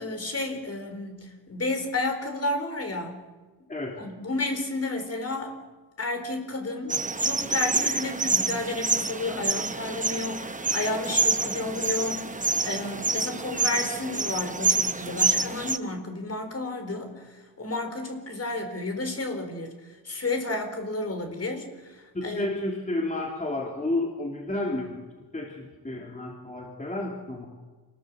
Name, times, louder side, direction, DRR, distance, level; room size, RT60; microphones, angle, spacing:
voice 1, 0.0-3.2 4.0-5.6 6.0-22.5, left 2 dB, 35° left, 5 dB, 4.5 m, -32 dB
sound 1, 6.9-15.8, right 3 dB, 20° right, 0.8 m, -27 dB
voice 2, 22.1-25.0 25.3-27.5, left 2 dB, 20° left, -1 dB, 3.0 m, -31 dB
27.5 x 20.0 x 7.8 m, 1.3 s
wide cardioid pair, 160°, 41 cm